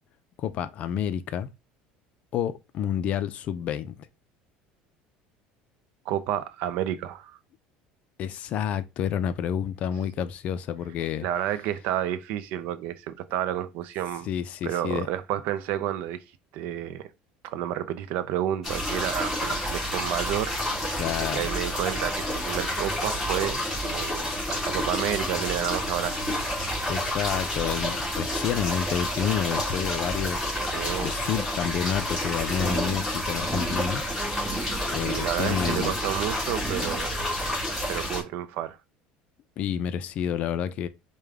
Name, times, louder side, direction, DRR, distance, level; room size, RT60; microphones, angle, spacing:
voice 1, 0.4-1.5 2.3-4.1 8.2-11.3 14.2-15.1 21.0-21.5 26.9-34.0 34.9-35.9 39.6-40.9, left 9 dB, 45° left, 0.4 m, -29 dB
voice 2, 6.1-7.4 11.2-14.3 14.6-16.2 16.5-17.1 17.4-20.6 21.3-26.4 30.7-31.1 35.0-37.2 37.9-38.8, right 11 dB, 65° right, 0.4 m, -30 dB
sound 1, 18.6-38.2, left 1 dB, ahead, 2.0 m, -29 dB
4.9 x 2.2 x 3.4 m
cardioid pair, 145°, 3 cm